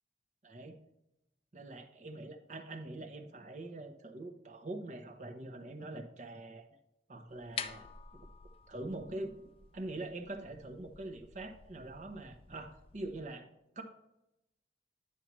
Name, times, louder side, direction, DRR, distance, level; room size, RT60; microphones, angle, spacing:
voice 1, 0.4-0.8 1.5-6.6 7.1-7.9 8.7-9.3 9.7-13.5 13.8-13.9, right 2 dB, 45° right, 5 dB, 0.9 m, -44 dB
sound 1, 7.3-13.2, left 7 dB, 35° left, 0.4 m, -49 dB
9.6 x 6.0 x 3.1 m, 0.90 s
head